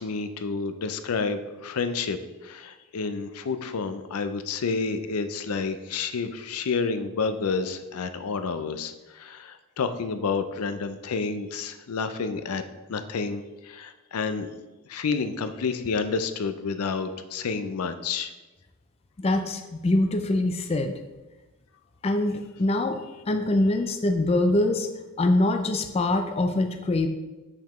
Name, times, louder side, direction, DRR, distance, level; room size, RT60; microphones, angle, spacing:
voice 1, 0.0-12.6 12.9-14.5 14.9-18.3, left 4 dB, 90° left, 10 dB, 0.5 m, -29 dB
voice 2, 19.2-20.9 22.0-24.9 25.2-27.1, left 2 dB, 25° left, 6 dB, 0.4 m, -24 dB
6.8 x 5.7 x 3.1 m, 1.2 s
head